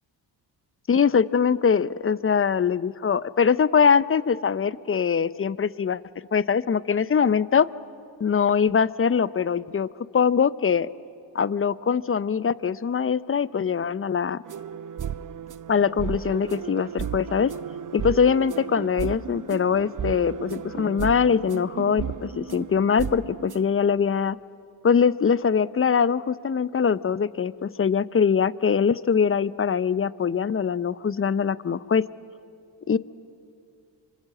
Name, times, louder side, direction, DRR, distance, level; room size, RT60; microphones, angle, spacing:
voice 1, 0.9-6.0 6.3-7.7 8.2-9.9 10.1-10.9 11.3-14.4 15.7-17.5 17.9-24.4 24.8-32.0 32.9-33.0, left 6 dB, 30° left, 18 dB, 0.6 m, -22 dB
sound 1, 14.4-23.8, right 7 dB, 40° right, 0.8 m, -34 dB
26.0 x 21.0 x 7.5 m, 2.5 s
supercardioid pair, 55°, 47 cm